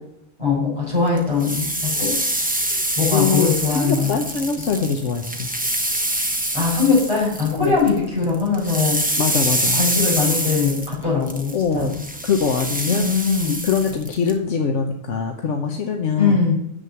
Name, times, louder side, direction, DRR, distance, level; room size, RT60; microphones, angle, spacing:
voice 1, 0.4-1.7 2.0-2.1 2.9-4.2 6.5-9.0 9.7-11.9 12.8-13.6 16.2-16.5, left 5 dB, 25° left, -10 dB, 4.8 m, -21 dB
sound 1, 1.2-8.0 8.2-14.3, right 1 dB, 5° right, 1.0 m, -25 dB
voice 2, 3.1-5.5 7.5-7.8 9.2-9.8 11.5-13.1 13.6-16.4, left 6 dB, 75° left, 4 dB, 1.2 m, -23 dB
7.4 x 6.5 x 7.7 m, 0.82 s
omnidirectional pair, 1.3 m